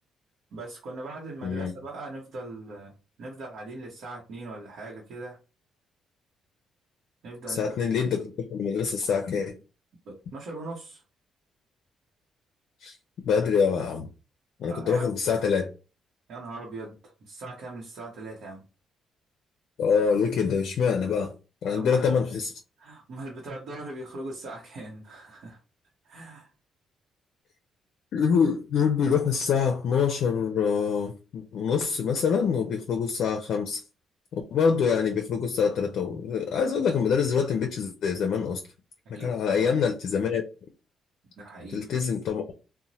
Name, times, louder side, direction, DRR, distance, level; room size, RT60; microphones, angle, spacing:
voice 1, 0.5-5.4 7.2-7.7 10.0-11.0 14.7-15.1 16.3-18.6 21.7-22.2 22.8-25.6 26.0-26.5 39.1-39.7 41.4-42.0, right 2 dB, 70° right, 0.8 m, -40 dB
voice 2, 7.5-9.6 12.8-13.0 13.2-14.1 14.6-15.7 19.8-21.3 21.6-22.5 28.1-33.8 34.5-38.6 39.1-40.4 41.7-42.5, left 6 dB, 70° left, 0.4 m, -25 dB
2.7 x 2.1 x 2.9 m
cardioid pair, 90°, 0 cm